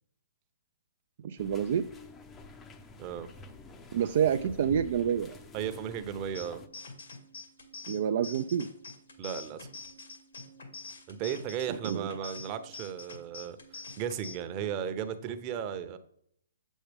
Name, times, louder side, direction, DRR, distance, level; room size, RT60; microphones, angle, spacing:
voice 1, 1.2-1.9 3.9-5.4 7.9-8.7 11.7-12.3, right 8 dB, 55° right, 7 dB, 0.4 m, -28 dB
sound 1, 1.4-6.7, left 3 dB, 15° left, 0.7 m, -49 dB
voice 2, 5.5-6.6 9.2-9.7 11.1-16.0, right 8 dB, 30° right, 8 dB, 0.8 m, -35 dB
sound 2, 6.3-14.3, left 3 dB, 75° left, 2.1 m, -46 dB
7.8 x 7.3 x 3.5 m, 0.67 s
hypercardioid pair, 135°, 0 cm